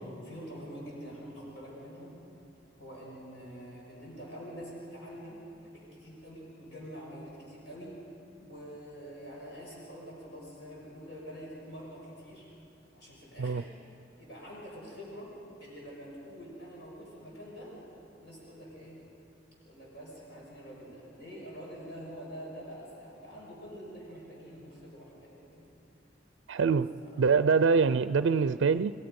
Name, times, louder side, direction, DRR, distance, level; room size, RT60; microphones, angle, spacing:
voice 1, 0.0-2.2 2.8-8.0 8.4-12.5 12.9-13.7 14.2-15.3 15.6-17.8 18.2-19.0 19.6-25.6 27.0-27.3, equal, 65° left, -5 dB, 6.0 m, -46 dB
voice 2, 26.5-28.9, right 5 dB, 80° right, 13 dB, 0.4 m, -25 dB
29.5 x 20.0 x 5.3 m, 2.8 s
head